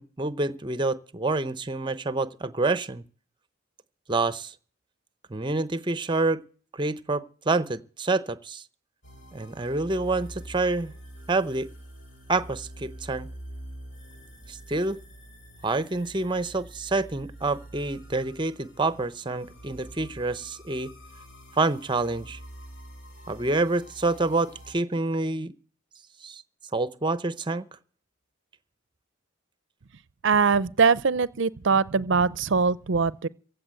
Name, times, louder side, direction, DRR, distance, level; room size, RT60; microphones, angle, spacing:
voice 1, 0.0-3.0 4.1-4.5 5.3-6.4 6.7-8.6 9.3-10.9 11.3-11.7 12.3-13.3 14.5-15.0 15.6-20.9 21.6-22.4 23.3-25.5 26.2-26.4 26.7-27.6, right 3 dB, 20° right, 0.7 m, -27 dB
sound 1, 9.0-24.7, right 1 dB, 65° left, 4.1 m, -46 dB
voice 2, 30.2-33.3, right 5 dB, 60° right, 0.6 m, -22 dB
16.0 x 6.9 x 8.9 m
head